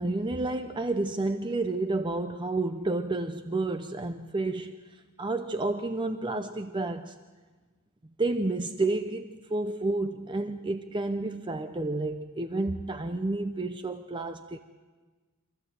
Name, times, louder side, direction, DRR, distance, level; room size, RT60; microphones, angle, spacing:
voice 1, 0.0-4.8 5.2-7.1 8.2-14.6, right 2 dB, 20° right, 0.7 m, -30 dB
25.5 x 15.0 x 7.9 m
head